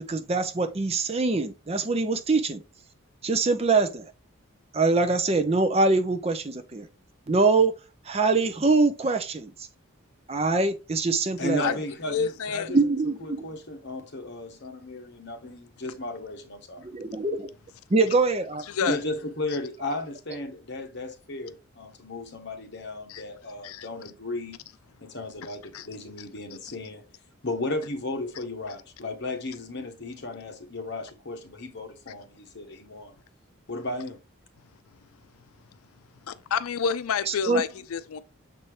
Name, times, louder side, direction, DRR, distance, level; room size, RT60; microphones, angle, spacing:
voice 1, 0.0-2.6 3.2-4.1 4.7-6.9 7.3-7.7 8.1-9.5 10.3-11.6 12.7-13.5 16.8-17.5 17.9-19.0 37.3-37.6, right 3 dB, 30° right, 0.6 m, -24 dB
voice 2, 11.4-12.8 13.2-16.9 18.9-24.6 25.0-27.0 27.4-33.1 33.7-34.2, left 2 dB, 55° left, 1.2 m, -35 dB
voice 3, 12.1-12.7 18.7-19.0 23.1-23.2 23.6-23.9 25.7-25.9 36.3-38.2, left 6 dB, 85° left, 0.4 m, -28 dB
6.9 x 4.2 x 3.3 m
head